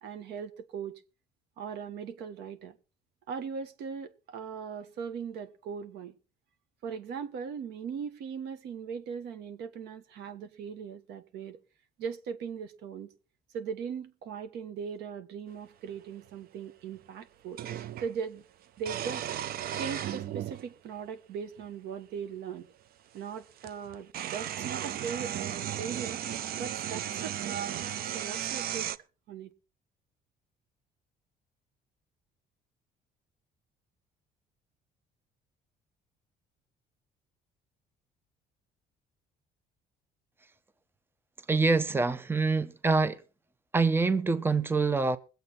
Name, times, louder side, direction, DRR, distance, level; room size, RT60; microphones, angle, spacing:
voice 1, 0.0-1.0 1.6-2.7 3.3-6.1 6.8-11.6 12.0-13.1 13.5-17.6 18.0-18.4 18.8-19.3 19.7-22.7 23.1-26.2 26.6-27.8 28.1-28.9 29.3-29.5, right 6 dB, 80° right, 1.6 m, -39 dB
sound 1, 15.9-16.0 17.6-18.1 18.8-20.6 21.6-21.7 23.2-23.3 23.6-29.0, right 11 dB, 60° right, 0.6 m, -35 dB
voice 2, 41.5-43.2 43.7-45.2, right 4 dB, 15° right, 0.8 m, -25 dB
21.5 x 8.0 x 4.3 m
cardioid pair, 110°, 17 cm